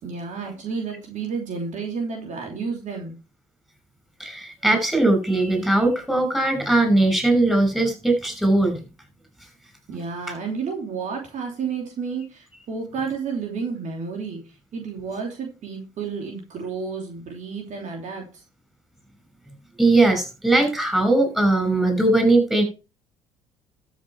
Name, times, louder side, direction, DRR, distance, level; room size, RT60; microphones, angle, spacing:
voice 1, 0.0-3.1 9.9-18.4, right 5 dB, 55° right, 1 dB, 2.9 m, -31 dB
voice 2, 4.2-8.8 19.8-22.6, right 2 dB, ahead, 4 dB, 5.9 m, -19 dB
13.0 x 6.4 x 4.7 m, 0.33 s
hypercardioid pair, 65°, 15 cm